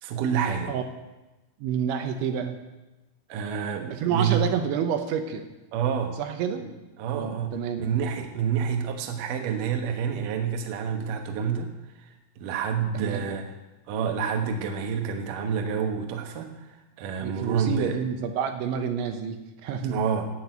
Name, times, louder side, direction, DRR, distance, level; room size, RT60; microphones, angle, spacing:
voice 1, 0.0-0.7 3.3-4.4 5.7-6.2 6.6-6.7 7.0-11.7 12.0-13.5 13.9-16.7 17.0-18.0 19.8-20.3, right 7 dB, 65° right, 4 dB, 2.2 m, -28 dB
voice 2, 1.6-2.6 4.0-5.5 6.2-6.7 7.1-7.9 12.9-13.3 17.2-20.0, right 7 dB, 80° right, 6 dB, 3.3 m, -28 dB
11.0 x 8.0 x 9.2 m, 1.1 s
omnidirectional pair, 5.4 m